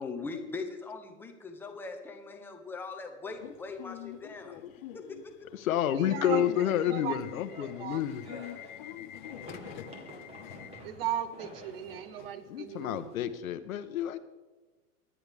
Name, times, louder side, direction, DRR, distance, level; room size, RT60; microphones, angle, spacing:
voice 1, 0.0-4.6 4.9-5.2, left 4 dB, 5° left, 4 dB, 0.8 m, -40 dB
Subway metro underground / Alarm, 3.3-13.1, left 13 dB, 35° left, 0.6 m, -46 dB
voice 2, 5.5-8.2 12.5-14.2, left 11 dB, 70° left, 11 dB, 1.2 m, -29 dB
voice 3, 6.0-6.5 6.9-7.2 7.6-8.0 10.8-13.2, right 10 dB, 40° right, 14 dB, 0.9 m, -36 dB
sound 1, 6.4-13.4, equal, 15° right, 1.6 m, -50 dB
23.5 x 10.0 x 3.5 m, 1.2 s
supercardioid pair, 160°, 43 cm